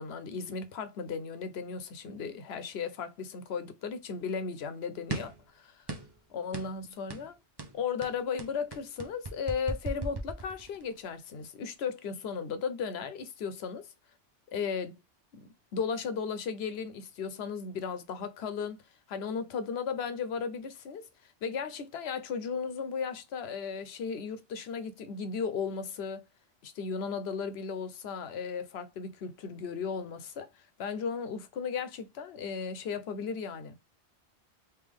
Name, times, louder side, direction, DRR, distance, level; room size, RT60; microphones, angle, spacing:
voice 1, 0.0-5.8 6.3-7.4 7.7-13.9 14.5-15.0 15.3-18.8 19.1-26.2 26.6-30.5 30.8-33.7, left 6 dB, 70° left, 0.9 m, -36 dB
sound 1, 5.1-5.4 5.9-6.2 6.5-6.7 7.1-7.3 7.6-10.9, right 2 dB, 30° right, 0.5 m, -37 dB
3.4 x 3.0 x 3.5 m
omnidirectional pair, 1.2 m